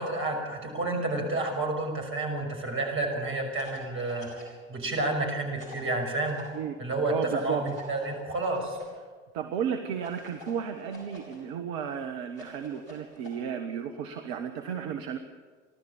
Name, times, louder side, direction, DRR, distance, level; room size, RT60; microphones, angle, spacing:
voice 1, 0.0-6.4 6.8-8.8, right 2 dB, 30° right, 3 dB, 6.0 m, -30 dB
sound 1, 3.5-4.6 5.6-6.5 7.6-8.9 10.0-11.4 12.3-13.3, left 1 dB, 85° right, 6.2 m, -47 dB
voice 2, 7.1-7.7 9.3-15.2, right 8 dB, 55° right, 7 dB, 1.4 m, -33 dB
30.0 x 12.5 x 7.4 m, 1.5 s
figure-of-eight pair, 70°, 38 cm